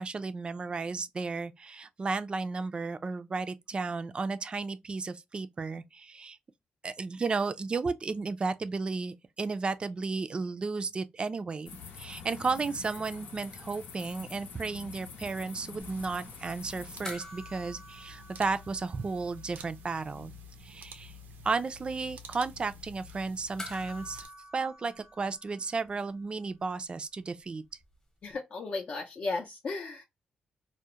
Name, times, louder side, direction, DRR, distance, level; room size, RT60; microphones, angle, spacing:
voice 1, 0.0-6.4 6.8-11.7 12.0-20.3 20.6-21.1 21.4-24.3 24.5-27.6, right 4 dB, 30° right, 0.3 m, -33 dB
sound 1, 11.7-17.1, left 6 dB, 90° left, 0.7 m, -46 dB
sound 2, 15.8-24.3, left 1 dB, 90° right, 0.6 m, -49 dB
sound 3, 17.0-19.7 20.0-20.1 23.6-26.2 28.3-28.4, left 1 dB, 20° left, 0.8 m, -47 dB
voice 2, 28.2-30.0, left 3 dB, 50° left, 0.5 m, -35 dB
2.3 x 2.0 x 2.8 m
cardioid pair, 105°, 3 cm